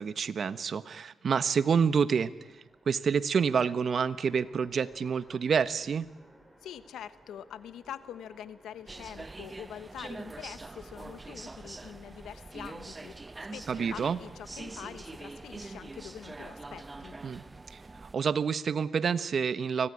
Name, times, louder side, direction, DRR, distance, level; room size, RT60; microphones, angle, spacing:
voice 1, 0.0-2.3 2.9-6.1 13.7-14.2 17.2-17.4 17.7-19.9, right 6 dB, 55° right, 14 dB, 1.2 m, -28 dB
Train, 1.7-17.0, right 1 dB, 10° right, 4.7 m, -59 dB
voice 2, 6.6-17.2, left 10 dB, 85° left, 14 dB, 1.2 m, -45 dB
sound 1, 8.9-18.2, right 3 dB, 25° right, 0.7 m, -44 dB
25.0 x 18.5 x 9.9 m, 1.1 s
cardioid pair, 75°, 0 cm